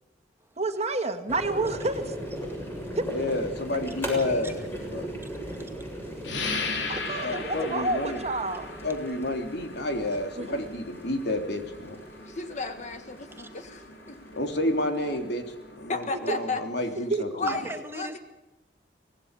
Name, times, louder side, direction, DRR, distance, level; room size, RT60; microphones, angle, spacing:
voice 1, 0.6-2.0 6.8-8.6 10.3-10.6 16.3-16.4 17.1-17.2, right 2 dB, 35° right, 7 dB, 1.9 m, -29 dB
sound 1, 1.3-15.8, equal, 15° left, 7.2 m, -39 dB
voice 2, 3.1-4.6 4.9-5.1 7.1-8.2 8.8-12.0 14.3-15.4 15.8-17.5, left 1 dB, 65° left, 4 dB, 3.6 m, -30 dB
voice 3, 4.3-4.6 12.2-14.2 15.9-16.6 17.3-17.6 17.9-18.2, left 3 dB, 40° left, 8 dB, 1.5 m, -33 dB
voice 4, 5.2-6.8 7.6-7.7 13.4-13.5 17.5-18.2, right 2 dB, 15° right, 5 dB, 2.1 m, -41 dB
sound 2, 6.2-16.5, left 4 dB, 80° left, 3.4 m, -39 dB
25.0 x 19.0 x 6.9 m, 1.1 s
head